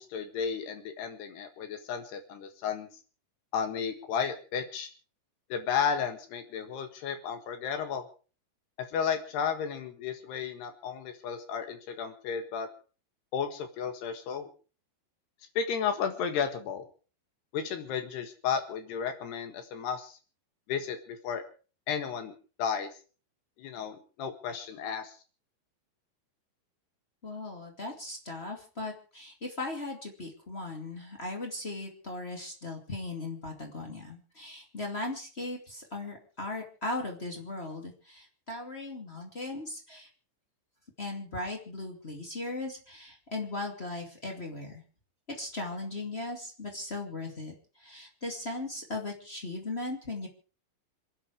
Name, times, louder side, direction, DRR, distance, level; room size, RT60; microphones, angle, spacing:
voice 1, 0.0-2.9 3.5-4.9 5.5-8.0 8.8-12.7 13.3-14.5 15.6-16.9 17.5-20.2 20.7-21.4 21.9-22.3 22.6-22.9 23.6-25.1, left 7 dB, 65° left, 7 dB, 3.4 m, -33 dB
voice 2, 27.2-40.1 41.0-44.8 45.3-50.3, left 2 dB, 35° left, 2 dB, 0.9 m, -38 dB
27.5 x 9.6 x 4.8 m, 0.38 s
omnidirectional pair, 5.6 m